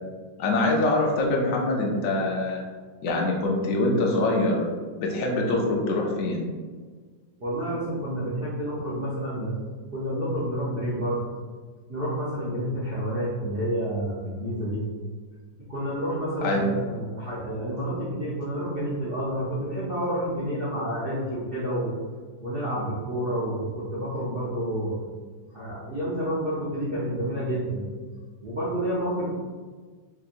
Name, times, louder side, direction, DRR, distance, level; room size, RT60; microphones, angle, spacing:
voice 1, 0.4-2.6 3.0-4.7 5.0-6.5 16.4-16.7, left 2 dB, 85° left, -1 dB, 0.7 m, -24 dB
voice 2, 7.4-9.5 9.9-11.2 11.9-14.8 15.7-21.9 22.4-25.0 25.5-27.8 28.4-29.3, right 1 dB, 75° right, -9 dB, 0.5 m, -29 dB
4.4 x 2.8 x 2.5 m, 1.5 s
omnidirectional pair, 2.1 m